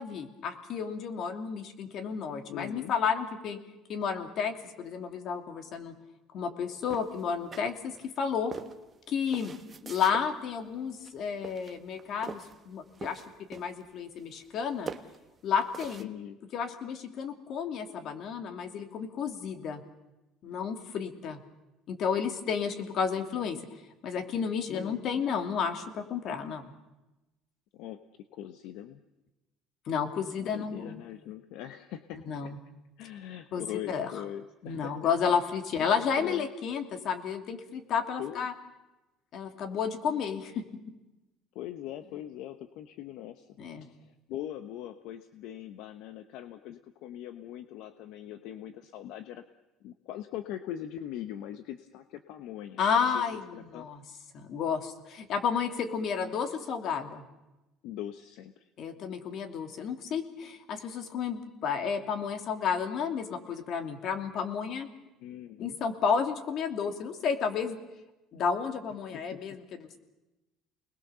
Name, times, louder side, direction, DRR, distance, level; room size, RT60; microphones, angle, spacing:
voice 1, 0.0-3.6 3.9-6.0 6.3-8.5 9.1-9.6 9.8-13.2 13.5-14.9 15.4-16.1 16.5-19.8 20.4-21.4 21.9-23.6 24.0-26.7 29.9-31.0 32.3-32.6 33.5-34.1 34.6-38.5 39.3-40.7 43.6-43.9 52.8-54.0 54.3-57.2 58.8-64.9 65.6-67.8 68.3-70.0, left 6 dB, 50° left, 6 dB, 2.7 m, -31 dB
voice 2, 2.5-2.9 16.0-16.4 24.7-25.2 27.7-28.1 28.3-29.0 30.4-32.5 33.0-35.0 36.2-36.5 38.2-38.5 41.5-49.4 49.8-53.9 57.8-58.7 65.2-65.8 69.1-69.4, left 11 dB, 70° left, 9 dB, 1.1 m, -41 dB
sound 1, 6.9-8.1 8.5-10.3 10.9-11.2 11.4-12.6 12.9-13.9 14.2-14.6 14.9-16.0, right 5 dB, 25° right, 1.2 m, -43 dB
30.0 x 20.5 x 7.0 m, 1.0 s
cardioid pair, 140°, 0 cm